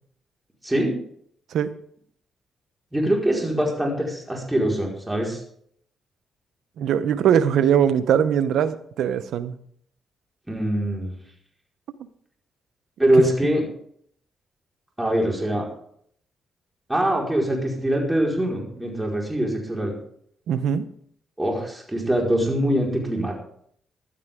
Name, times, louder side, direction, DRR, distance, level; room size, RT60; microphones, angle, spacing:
voice 1, 0.6-1.0 2.9-5.4 10.5-11.2 13.0-13.6 15.0-15.7 16.9-19.9 21.4-23.4, right 1 dB, 10° right, 4.8 m, -23 dB
voice 2, 6.8-9.6 20.5-20.9, right 8 dB, 80° right, 0.9 m, -21 dB
15.0 x 12.0 x 3.7 m
cardioid pair, 70°, 0 cm